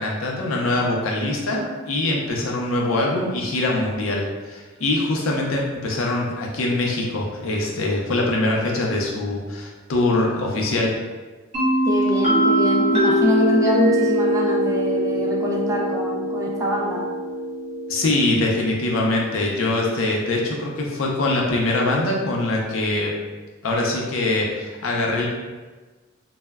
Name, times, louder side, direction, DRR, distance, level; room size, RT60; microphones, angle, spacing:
voice 1, 0.0-10.9 17.9-23.1 23.6-25.3, left 2 dB, 75° left, -1 dB, 0.5 m, -23 dB
sound 1, 11.5-19.2, equal, 35° right, 0.9 m, -22 dB
voice 2, 11.8-17.1, left 1 dB, 15° right, -3 dB, 0.4 m, -24 dB
2.2 x 2.0 x 3.3 m, 1.3 s
head